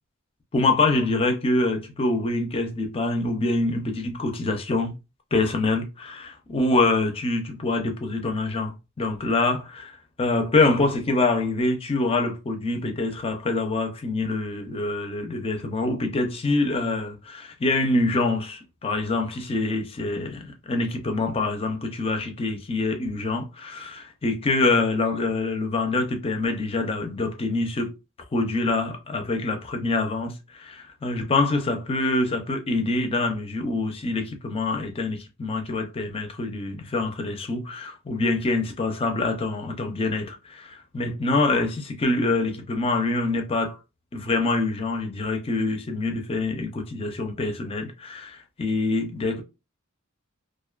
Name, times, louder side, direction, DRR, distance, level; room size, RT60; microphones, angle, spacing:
voice 1, 0.5-4.9 5.3-9.9 10.2-27.9 28.3-43.8 44.1-49.4, left 2 dB, 30° left, 0.5 m, -25 dB
2.4 x 2.1 x 2.3 m
head